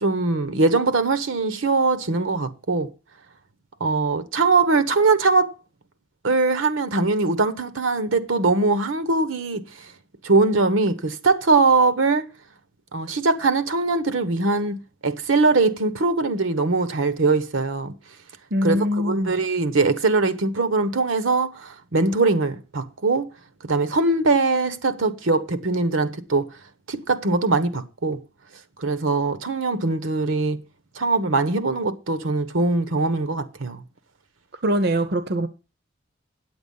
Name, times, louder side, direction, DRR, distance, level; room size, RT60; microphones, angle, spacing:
voice 1, 0.0-2.9 3.8-5.5 6.2-9.6 10.2-12.3 12.9-17.9 18.6-23.3 23.6-26.5 26.9-28.2 28.8-30.6 30.9-33.8, right 3 dB, 80° right, 1.0 m, -21 dB
voice 2, 18.5-19.4 34.6-35.5, equal, 55° right, 0.8 m, -22 dB
9.3 x 8.0 x 5.4 m
head